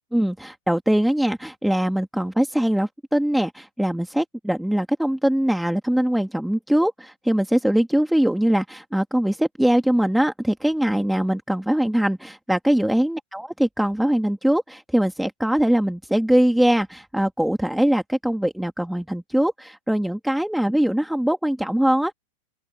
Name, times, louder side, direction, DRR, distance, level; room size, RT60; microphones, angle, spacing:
voice 1, 0.1-22.1, right 1 dB, ahead, 3.0 m, -22 dB
open air
figure-of-eight pair, 90°, 0 cm